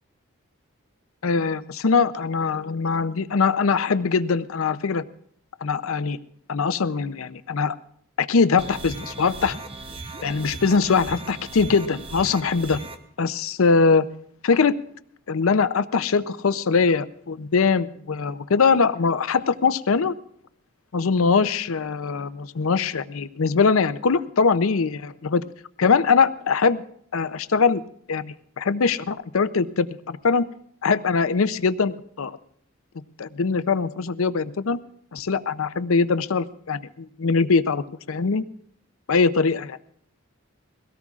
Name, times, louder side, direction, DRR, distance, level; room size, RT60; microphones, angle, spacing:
voice 1, 1.2-5.0 5.6-6.2 6.5-7.7 8.2-9.6 10.2-12.8 13.2-14.0 14.4-14.8 15.3-20.1 20.9-25.4 25.8-26.8 27.1-27.8 28.1-30.4 30.8-32.4 33.2-34.8 35.1-38.4 39.1-39.8, left 5 dB, 75° left, 14 dB, 0.6 m, -22 dB
sound 1, 8.6-13.0, right 3 dB, 25° right, 0.8 m, -37 dB
22.5 x 17.0 x 2.4 m, 0.65 s
head